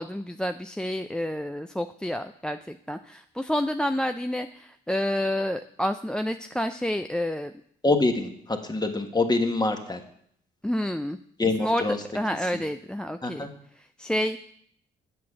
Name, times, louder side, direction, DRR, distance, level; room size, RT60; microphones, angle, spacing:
voice 1, 0.0-7.5 10.6-11.2 11.6-11.8 12.1-13.5 13.8-14.5, equal, 5° left, 8 dB, 0.4 m, -29 dB
voice 2, 7.8-10.0 11.4-12.0 13.2-13.5, left 3 dB, 20° left, 5 dB, 1.5 m, -25 dB
7.6 x 6.2 x 7.2 m, 0.66 s
supercardioid pair, 70°, 20 cm